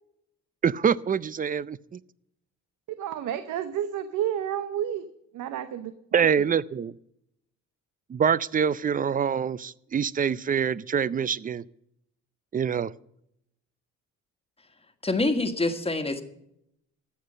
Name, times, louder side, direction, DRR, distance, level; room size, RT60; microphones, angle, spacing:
voice 1, 0.6-2.0 6.1-6.9 8.1-11.6 12.5-12.9, right 7 dB, 30° right, 21 dB, 0.5 m, -25 dB
voice 2, 2.9-5.1 5.3-6.5, right 10 dB, 80° right, 11 dB, 0.8 m, -31 dB
voice 3, 15.0-16.2, left 2 dB, 20° left, 7 dB, 1.5 m, -26 dB
14.0 x 8.1 x 6.6 m, 0.77 s
cardioid pair, 90°, 30 cm